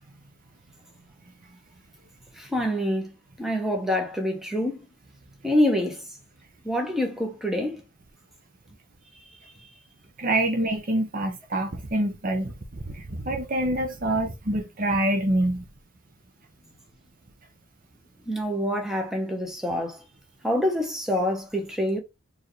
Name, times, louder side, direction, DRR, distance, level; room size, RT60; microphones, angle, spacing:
voice 1, 2.3-3.1 3.4-4.9 5.4-6.0 6.6-7.8 9.3-9.4 18.3-20.0 20.4-22.0, left 1 dB, ahead, 1.0 m, -26 dB
voice 2, 10.2-12.5 12.9-15.7, right 1 dB, 40° right, 0.7 m, -26 dB
4.4 x 3.5 x 3.2 m
head